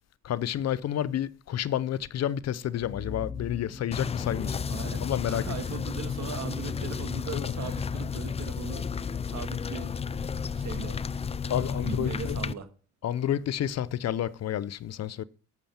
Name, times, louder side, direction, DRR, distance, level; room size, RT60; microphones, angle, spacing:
voice 1, 0.2-5.4 7.3-7.5 11.5-12.4 13.0-15.2, left 11 dB, 60° left, 0.7 m, -30 dB
sound 1, 2.8-12.4, left 5 dB, ahead, 2.2 m, -40 dB
sound 2, 3.9-12.5, left 6 dB, 20° left, 0.3 m, -33 dB
voice 2, 4.7-8.8 9.2-9.9 10.5-11.0 11.5-12.7, right 7 dB, 65° right, 1.8 m, -39 dB
8.6 x 7.1 x 5.8 m
cardioid pair, 90°, 30 cm